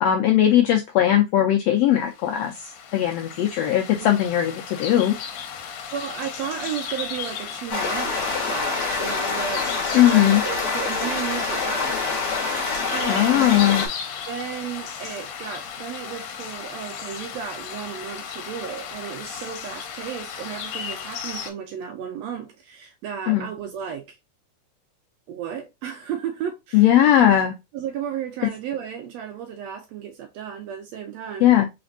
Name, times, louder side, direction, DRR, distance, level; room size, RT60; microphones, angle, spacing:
voice 1, 0.0-5.1 9.9-10.4 13.1-13.8 23.3-23.5 26.7-27.5 31.4-31.7, left 11 dB, 85° left, 1.5 m, -19 dB
sound 1, 2.0-21.5, left 7 dB, 70° left, 1.9 m, -35 dB
voice 2, 5.9-8.1 8.4-12.1 12.9-13.6 14.3-24.2 25.3-27.3 27.7-31.5, right 8 dB, 75° right, 1.6 m, -34 dB
sound 2, 7.7-13.9, left 4 dB, 50° left, 1.4 m, -26 dB
4.2 x 3.9 x 2.6 m
omnidirectional pair, 3.5 m